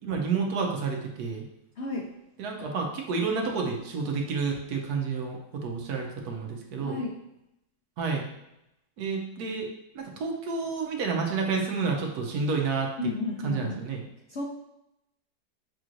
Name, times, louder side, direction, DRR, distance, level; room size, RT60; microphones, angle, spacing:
voice 1, 0.0-1.5 2.4-7.0 8.0-8.3 9.0-9.7 9.9-12.9 13.4-14.0, right 4 dB, 70° right, 1 dB, 1.1 m, -30 dB
voice 2, 1.8-2.1 6.8-7.1 13.0-13.8 14.3-14.4, left 2 dB, 80° left, -2 dB, 0.6 m, -32 dB
6.3 x 3.0 x 2.5 m, 0.85 s
omnidirectional pair, 1.9 m